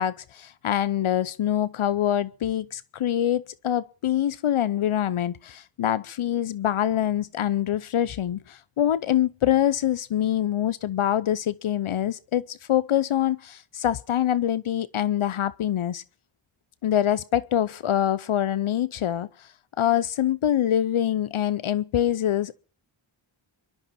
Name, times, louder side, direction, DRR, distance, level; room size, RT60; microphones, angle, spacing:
voice 1, 0.0-16.0 16.8-19.5 19.8-22.5, left 11 dB, 75° left, 0.7 m, -25 dB
23.5 x 12.5 x 4.2 m
cardioid pair, 45°, 50 cm